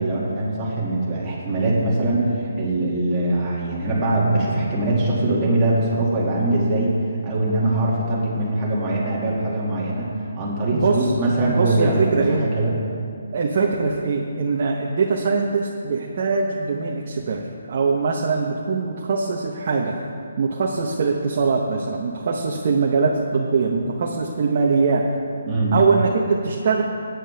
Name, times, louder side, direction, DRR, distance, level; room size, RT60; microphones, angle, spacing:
voice 1, 0.0-12.7 25.4-25.7, right 2 dB, 15° right, -6 dB, 2.2 m, -22 dB
voice 2, 10.7-11.1 11.4-12.5 13.3-20.0 20.4-25.1 25.7-26.8, right 4 dB, 35° right, -1 dB, 0.9 m, -22 dB
17.0 x 9.3 x 3.4 m, 2.3 s
hypercardioid pair, 175°, 0 cm